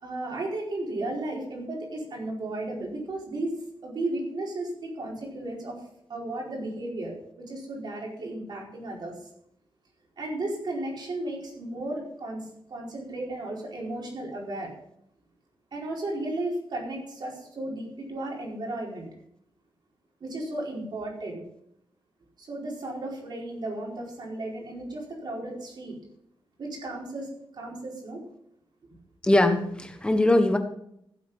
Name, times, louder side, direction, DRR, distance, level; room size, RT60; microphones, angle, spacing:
voice 1, 0.0-3.5 3.8-5.8 6.1-9.1 10.2-14.7 15.7-19.1 20.2-21.4 22.4-26.0 26.6-28.2, right 2 dB, 55° right, -2 dB, 4.5 m, -34 dB
voice 2, 29.2-30.6, left 1 dB, 10° left, 6 dB, 1.4 m, -21 dB
16.0 x 7.7 x 5.6 m, 0.73 s
wide cardioid pair, 150°, 9 cm